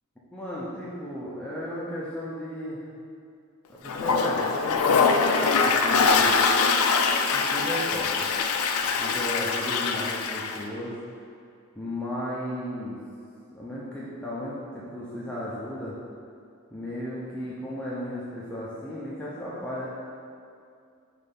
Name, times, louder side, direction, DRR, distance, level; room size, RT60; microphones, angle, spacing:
voice 1, 0.3-2.8 3.7-6.4 7.3-8.3 9.0-10.9 11.8-13.0 13.5-16.0 16.7-19.9, left 1 dB, 5° left, -8 dB, 0.7 m, -34 dB
Toilet flush, 3.8-10.6, left 5 dB, 75° left, 0.4 m, -23 dB
6.1 x 3.3 x 5.4 m, 2.4 s
head